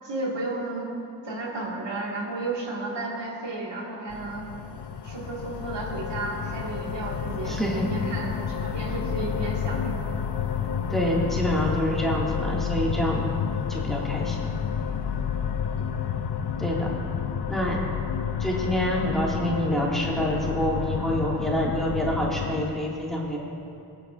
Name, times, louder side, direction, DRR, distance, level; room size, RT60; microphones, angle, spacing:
voice 1, 0.0-0.9 1.2-4.5 5.0-10.1 15.7-16.0, right 2 dB, 80° right, -3 dB, 1.9 m, -33 dB
sound 1, 4.1-22.7, left 7 dB, 70° left, 0.7 m, -30 dB
voice 2, 7.5-7.9 10.9-13.2 13.7-14.5 16.6-16.9 17.5-17.8 18.4-23.4, equal, ahead, -4 dB, 2.0 m, -27 dB
21.5 x 8.6 x 2.5 m, 2.7 s
wide cardioid pair, 70°, 42 cm